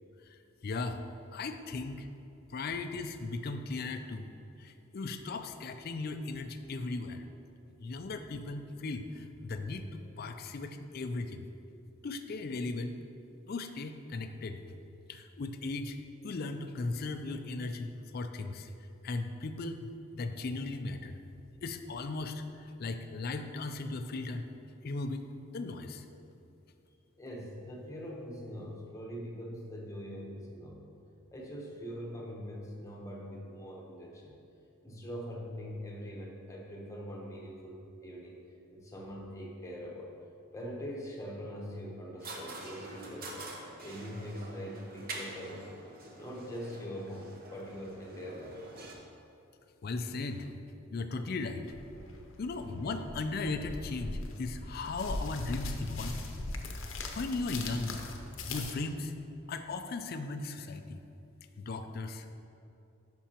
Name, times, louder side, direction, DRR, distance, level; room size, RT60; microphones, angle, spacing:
voice 1, 0.3-1.0 1.3-2.1 2.5-4.3 4.6-7.2 7.8-11.5 12.0-13.0 13.5-14.6 15.1-16.0 16.2-18.7 19.0-19.9 20.2-21.2 21.6-24.4 24.8-26.1 49.8-50.5 50.9-51.7 52.4-56.2 56.7-58.0 58.5-59.1 59.5-61.0 61.6-62.4, left 3 dB, 45° left, 7 dB, 0.4 m, -37 dB
voice 2, 27.2-31.0 31.3-34.4 34.8-38.4 38.7-40.1 40.5-43.5 43.8-45.7 46.2-48.6, equal, 15° left, -2 dB, 0.9 m, -42 dB
sound 1, 42.2-48.9, right 2 dB, 45° right, 0.9 m, -46 dB
sound 2, 51.7-58.7, left 2 dB, 75° left, 0.7 m, -40 dB
10.0 x 6.1 x 2.9 m, 2.7 s
head